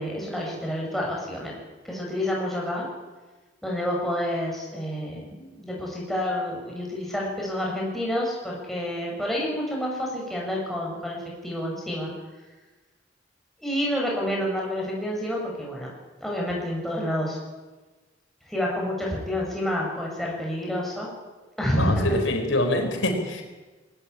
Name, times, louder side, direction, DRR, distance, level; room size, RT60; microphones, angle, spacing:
voice 1, 0.0-1.5 1.8-2.9 3.6-11.2 11.4-12.1 13.6-15.9 16.2-17.4 18.5-21.1 21.6-22.2, equal, ahead, -3 dB, 7.6 m, -28 dB
voice 2, 21.8-23.4, left 1 dB, 90° left, 4 dB, 4.5 m, -25 dB
22.0 x 17.5 x 9.8 m, 1.2 s
head